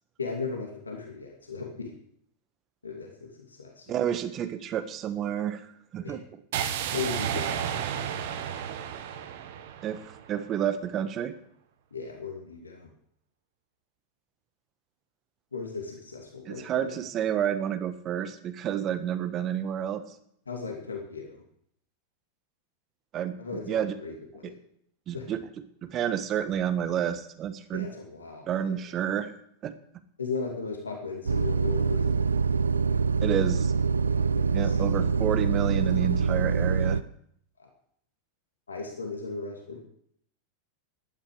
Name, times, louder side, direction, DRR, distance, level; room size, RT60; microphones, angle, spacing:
voice 1, 0.2-1.9 2.8-3.8 6.0-6.2 6.9-7.7 11.9-12.9 15.5-16.7 20.5-21.4 23.4-24.5 25.1-25.2 27.7-28.7 30.2-32.4 34.1-34.8 37.6-37.7 38.7-39.8, left 4 dB, 75° left, 1 dB, 2.6 m, -37 dB
voice 2, 3.9-6.2 9.8-11.3 16.4-20.0 23.1-23.4 23.7-23.9 24.4-24.5 25.1-25.4 25.8-27.9 28.5-29.4 29.6-29.7 33.2-33.7 34.5-37.0, right 9 dB, 30° right, 11 dB, 1.4 m, -30 dB
sound 1, 6.5-10.6, right 9 dB, 55° right, 1.4 m, -32 dB
sound 2, 31.3-37.0, right 5 dB, 75° right, 0.5 m, -25 dB
16.0 x 11.5 x 5.0 m, 0.68 s
figure-of-eight pair, 90°, 0 cm